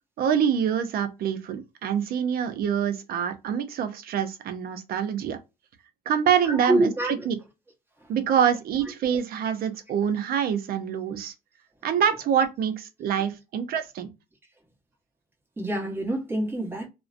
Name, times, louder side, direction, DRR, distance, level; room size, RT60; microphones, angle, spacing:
voice 1, 0.2-5.4 6.1-7.4 8.1-11.3 11.8-14.1, right 8 dB, 60° right, 0.6 m, -25 dB
voice 2, 6.4-7.3 15.6-16.9, right 1 dB, 15° right, 1.1 m, -26 dB
2.4 x 2.1 x 2.5 m
cardioid pair, 110°, 17 cm